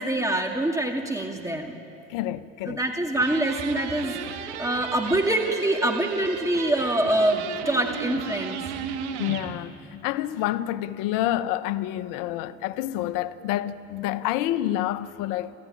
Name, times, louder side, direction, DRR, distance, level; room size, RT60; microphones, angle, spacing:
voice 1, 0.0-1.8 2.7-4.1 4.6-8.6, right 1 dB, 10° right, 2.2 m, -25 dB
voice 2, 2.1-2.8 9.2-15.5, left 13 dB, 70° left, 0.9 m, -28 dB
sound 1, 3.1-9.5, right 8 dB, 85° right, 2.0 m, -35 dB
28.5 x 14.5 x 9.8 m
hypercardioid pair, 75°, 34 cm